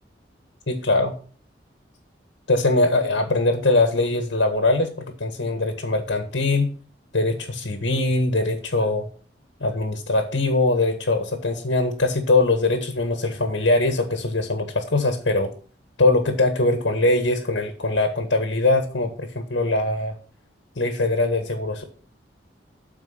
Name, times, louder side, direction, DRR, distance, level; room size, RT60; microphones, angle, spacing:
voice 1, 0.7-1.1 2.5-4.9 5.2-6.7 7.1-9.1 9.6-15.5 16.0-20.1 20.7-21.8, left 2 dB, 85° left, 6 dB, 1.5 m, -22 dB
13.0 x 4.7 x 5.8 m, 0.43 s
head